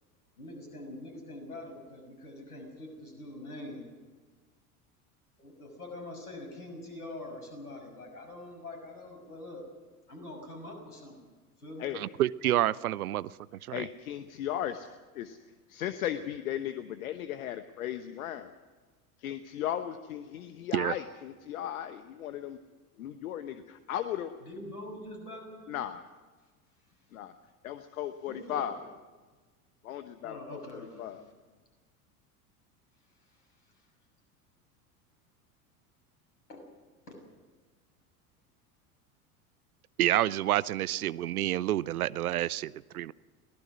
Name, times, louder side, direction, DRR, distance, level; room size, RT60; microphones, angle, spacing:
voice 1, 0.4-3.9 5.4-9.6 10.1-11.2 11.6-11.9 24.4-25.8 28.3-28.7 30.2-31.1 33.3-33.4 33.7-33.9 36.5-36.6 37.1-37.2, left 1 dB, 80° left, 4 dB, 6.4 m, -44 dB
voice 2, 11.9-13.3 13.6-13.8 20.7-20.9 40.0-43.1, right 13 dB, 70° right, 21 dB, 0.7 m, -28 dB
voice 3, 13.7-15.4 15.7-18.5 19.2-22.6 23.0-24.4 25.7-26.0 27.1-27.3 27.6-28.8 29.8-30.6 31.0-31.2, left 11 dB, 65° left, 10 dB, 1.1 m, -36 dB
23.0 x 18.5 x 6.2 m, 1.3 s
figure-of-eight pair, 75°, 45 cm